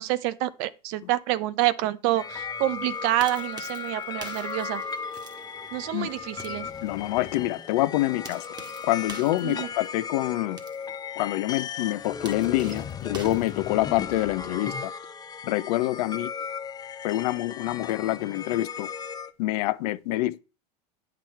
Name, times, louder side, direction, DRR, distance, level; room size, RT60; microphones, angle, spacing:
voice 1, 0.0-4.8 5.7-6.7 9.4-9.7, right 15 dB, 55° right, 0.7 m, -27 dB
sound 1, 2.1-19.3, left 6 dB, 20° left, 0.7 m, -36 dB
sound 2, 2.8-14.3, right 2 dB, 20° right, 1.5 m, -48 dB
voice 2, 6.8-8.5 8.8-10.6 11.2-14.9 15.4-16.3 17.0-18.9 19.4-20.4, left 16 dB, 65° left, 0.6 m, -26 dB
9.0 x 6.1 x 4.4 m
hypercardioid pair, 100°, 21 cm